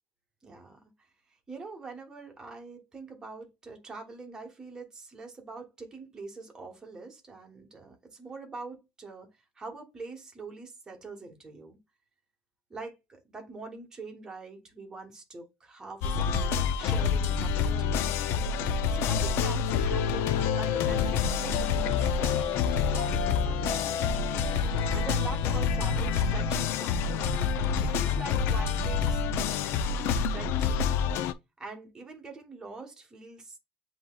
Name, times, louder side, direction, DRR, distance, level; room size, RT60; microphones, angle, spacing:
voice 1, 0.4-0.9 1.5-11.8 12.7-18.2 18.9-23.8 24.9-27.2 27.8-29.2 30.3-30.9 31.6-33.6, right 3 dB, 15° right, 1.2 m, -44 dB
sound 1, 16.0-31.3, left 6 dB, 60° left, 0.5 m, -27 dB
7.8 x 2.8 x 2.3 m
cardioid pair, 170°, 5 cm